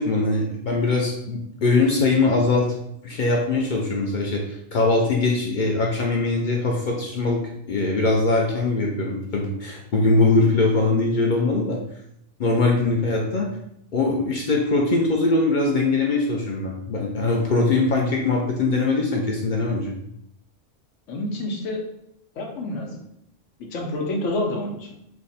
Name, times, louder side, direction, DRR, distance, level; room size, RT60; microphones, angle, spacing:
voice 1, 0.0-2.7 3.0-7.4 7.7-11.8 12.4-13.5 13.9-19.9, left 3 dB, 60° left, 0 dB, 0.5 m, -21 dB
voice 2, 21.1-21.8 22.4-23.0 23.6-24.9, left 1 dB, 85° left, 1 dB, 1.1 m, -28 dB
3.5 x 2.1 x 3.9 m, 0.77 s
omnidirectional pair, 1.3 m